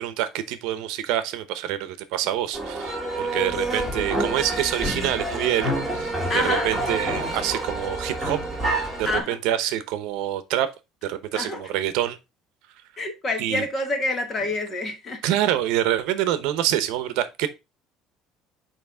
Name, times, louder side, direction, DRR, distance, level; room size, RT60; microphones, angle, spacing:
voice 1, 0.0-8.4 9.0-10.7 11.0-12.2 13.4-13.7 15.2-17.5, right 12 dB, 75° right, 0.8 m, -26 dB
sound 1, 2.5-9.2, right 1 dB, 5° left, 3.8 m, -28 dB
voice 2, 6.3-6.7 9.0-9.4 11.3-11.7 13.0-15.2, left 2 dB, 30° left, 1.3 m, -27 dB
8.9 x 3.1 x 3.5 m
cardioid pair, 160°, 0 cm